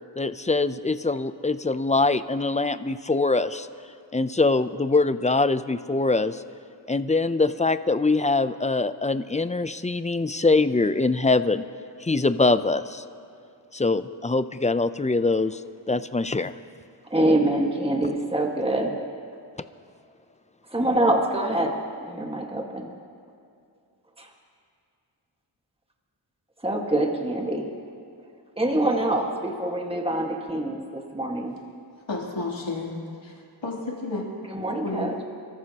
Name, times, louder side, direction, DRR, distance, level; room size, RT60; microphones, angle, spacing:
voice 1, 0.2-3.7 4.1-6.4 6.9-11.6 12.0-13.0 13.7-15.6 15.9-16.5, left 3 dB, 15° left, 12 dB, 0.5 m, -23 dB
voice 2, 17.1-19.0 20.7-22.9 24.2-24.3 26.6-27.7 28.6-31.6 34.5-35.2, right 1 dB, 10° right, 1 dB, 1.7 m, -25 dB
voice 3, 32.1-32.9 33.2-33.4 33.6-34.3 34.7-35.1, left 3 dB, 90° left, -4 dB, 3.2 m, -31 dB
29.0 x 14.0 x 2.9 m, 2.4 s
wide cardioid pair, 50°, 45 cm